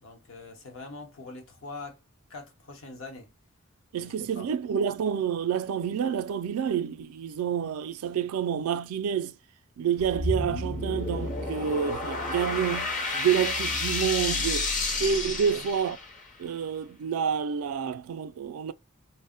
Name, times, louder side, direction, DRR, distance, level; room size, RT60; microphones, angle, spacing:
voice 1, 0.0-2.0 2.3-3.3 4.0-4.5 15.4-15.7, left 3 dB, 70° left, 0.8 m, -43 dB
voice 2, 3.9-9.4 9.8-14.7 15.0-16.0 16.4-18.7, right 7 dB, 85° right, 0.3 m, -28 dB
sound 1, 10.0-16.3, left 2 dB, 40° left, 0.7 m, -30 dB
2.1 x 2.0 x 3.6 m
head